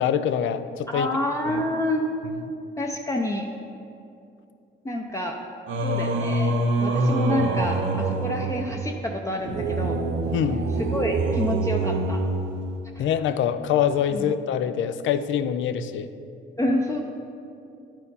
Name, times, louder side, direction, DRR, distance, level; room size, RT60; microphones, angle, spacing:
voice 1, 0.0-1.1 1.5-1.6 10.3-10.7 13.0-16.1, left 9 dB, 75° left, 12 dB, 0.5 m, -24 dB
voice 2, 0.9-2.0 2.8-3.5 4.8-5.4 5.8-10.0 10.8-12.2 13.0-13.1 14.1-14.3 16.6-17.0, left 1 dB, 15° left, 0 dB, 0.6 m, -28 dB
Singing, 5.7-13.0, right 2 dB, 70° right, 0.7 m, -25 dB
9.9 x 4.5 x 5.4 m, 2.6 s
cardioid pair, 90°, 20 cm